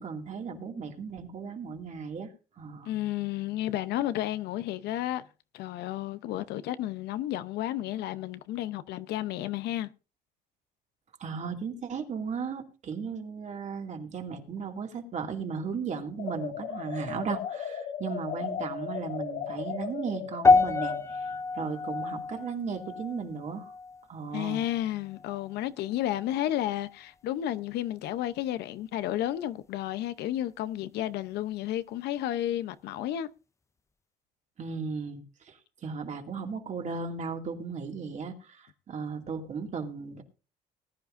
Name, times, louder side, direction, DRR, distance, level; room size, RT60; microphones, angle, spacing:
voice 1, 0.0-2.9 11.2-21.3 21.5-23.7 24.1-24.6 34.6-40.2, right 5 dB, 45° right, 2.3 m, -36 dB
voice 2, 2.9-5.2 5.5-9.9 24.3-33.3, left 13 dB, 80° left, 0.7 m, -32 dB
sound 1, 16.2-21.1, left 7 dB, 60° left, 2.2 m, -36 dB
sound 2, 20.4-24.8 25.1-25.5 26.1-26.2, left 4 dB, 15° left, 0.5 m, -27 dB
19.5 x 10.5 x 2.6 m
cardioid pair, 110°, 17 cm